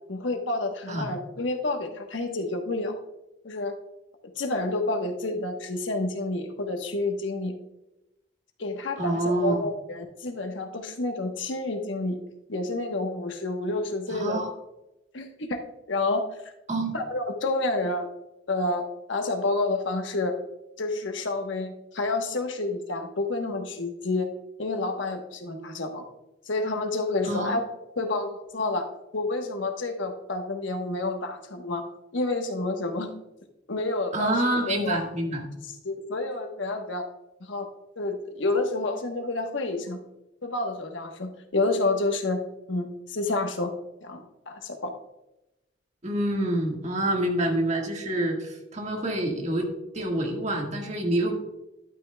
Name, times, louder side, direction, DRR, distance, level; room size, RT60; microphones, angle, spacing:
voice 1, 0.1-3.0 3.4-3.7 4.4-7.5 8.6-12.2 12.5-14.4 15.1-15.6 15.9-16.2 16.9-18.1 18.5-20.3 20.8-24.3 24.6-26.0 26.5-27.7 28.0-28.9 29.1-31.8 32.1-33.1 33.7-34.4 34.7-35.0 35.8-37.1 37.5-37.7 38.0-40.0 40.4-42.4 42.7-43.7 44.0-44.9, left 2 dB, 85° left, 4 dB, 1.1 m, -29 dB
voice 2, 9.0-9.7 14.1-14.5 16.7-16.9 27.2-27.5 34.1-35.5 46.0-49.7 49.9-51.3, right 1 dB, 40° right, 1 dB, 1.6 m, -27 dB
11.5 x 8.9 x 2.2 m, 0.94 s
head